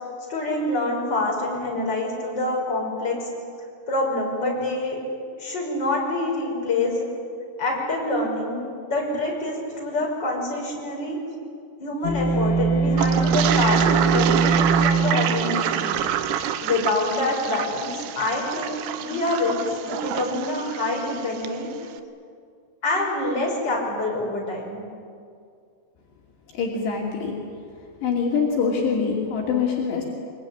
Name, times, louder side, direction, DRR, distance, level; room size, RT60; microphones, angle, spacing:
voice 1, 0.3-3.3 3.9-5.0 5.4-7.1 7.6-8.6 8.9-11.2 11.8-16.0 16.6-21.7 22.8-24.8, left 2 dB, 20° left, -2 dB, 6.6 m, -26 dB
sound 1, 12.0-16.3, right 4 dB, 90° left, 4.5 m, -22 dB
Toilet flush, 13.0-21.6, right 10 dB, 85° right, 3.4 m, -27 dB
voice 2, 26.5-27.4 28.0-30.0, left 5 dB, 65° left, -2 dB, 4.7 m, -24 dB
24.0 x 23.5 x 10.0 m, 2.3 s
omnidirectional pair, 5.3 m